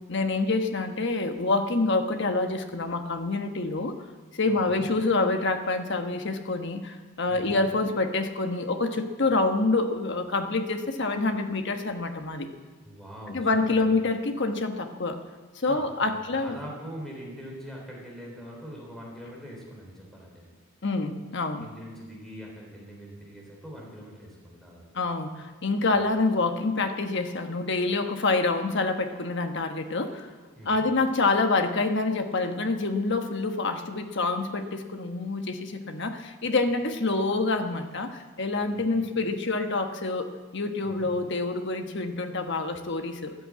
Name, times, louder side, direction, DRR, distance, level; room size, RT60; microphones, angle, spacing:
voice 1, 0.1-4.0 4.3-12.5 13.3-15.2 15.5-16.6 20.8-21.7 24.9-30.3 30.7-43.3, left 3 dB, 55° left, 6 dB, 1.2 m, -27 dB
voice 2, 4.5-4.9 7.3-7.6 12.8-13.9 15.7-20.5 21.6-24.8 30.6-30.9 38.7-39.1 40.8-41.1, equal, ahead, -2 dB, 3.5 m, -43 dB
14.0 x 10.0 x 8.6 m, 1.4 s
head